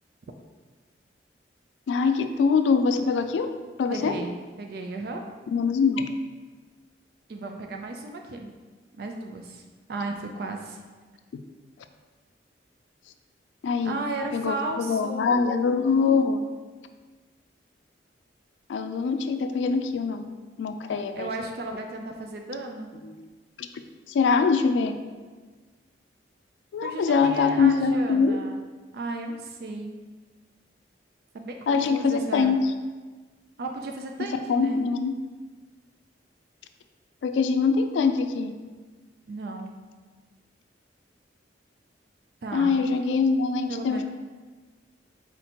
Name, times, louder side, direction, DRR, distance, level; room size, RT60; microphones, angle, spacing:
voice 1, 1.9-3.5 3.8-4.1 5.5-6.1 11.3-11.4 13.6-14.0 14.3-16.4 18.7-20.2 20.6-21.3 23.6-23.7 24.1-25.0 26.7-28.4 31.7-32.6 34.2-35.1 37.2-38.5 42.5-44.0, left 5 dB, 85° left, 8 dB, 0.3 m, -23 dB
voice 2, 3.9-5.2 7.3-8.5 8.9-9.6 9.9-10.8 13.8-15.6 20.9-22.9 26.8-28.6 28.9-30.0 31.3-32.6 33.6-34.8 39.3-39.7 42.4-42.8 43.7-44.0, right 2 dB, 60° right, 3 dB, 0.4 m, -34 dB
4.3 x 2.8 x 4.2 m, 1.4 s
head